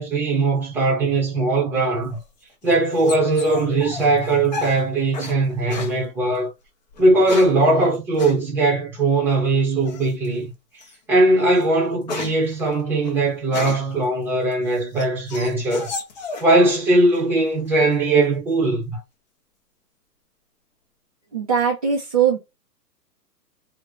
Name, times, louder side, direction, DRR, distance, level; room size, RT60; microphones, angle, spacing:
voice 1, 0.0-2.2 2.6-6.5 7.0-10.5 11.1-15.9 16.4-19.0, right 2 dB, 5° right, 0.8 m, -20 dB
sound 1, 2.1-5.4 5.7-6.0 6.9-7.6 8.2-8.4 9.9-10.3 10.8-11.0 11.4-14.0 14.5-16.9 17.1-17.7, left 4 dB, 30° left, 0.6 m, -33 dB
voice 2, 21.3-22.4, right 7 dB, 25° right, 0.4 m, -20 dB
3.0 x 2.1 x 3.7 m
hypercardioid pair, 140°, 49 cm